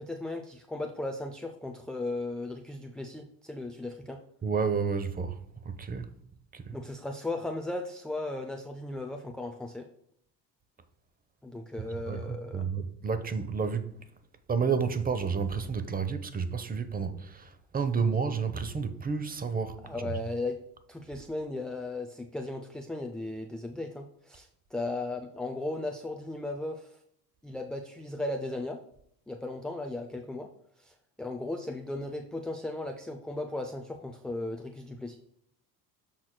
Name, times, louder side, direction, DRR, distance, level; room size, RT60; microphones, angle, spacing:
voice 1, 0.0-4.2 6.7-9.9 11.4-12.7 19.8-20.6 20.9-26.9 27.4-28.8 29.3-30.5 30.8-35.2, left 2 dB, ahead, 0.3 m, -36 dB
voice 2, 4.4-6.1 6.5-6.8 11.9-12.2 12.5-13.9 14.5-20.2, right 5 dB, 20° right, 0.8 m, -31 dB
12.5 x 4.2 x 2.2 m
hypercardioid pair, 65°, 50 cm